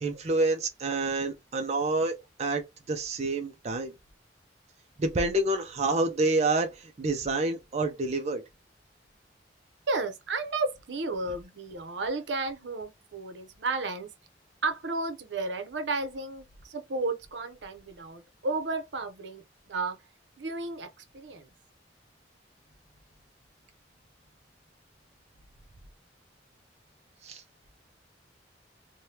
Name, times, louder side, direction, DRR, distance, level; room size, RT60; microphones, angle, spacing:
voice 1, 0.0-3.9 5.0-8.4 27.2-27.4, right 2 dB, 35° right, 0.4 m, -28 dB
voice 2, 9.9-14.1 14.6-19.4 19.7-20.0 20.4-21.5, right 3 dB, 80° right, 0.7 m, -33 dB
3.2 x 2.2 x 2.7 m
head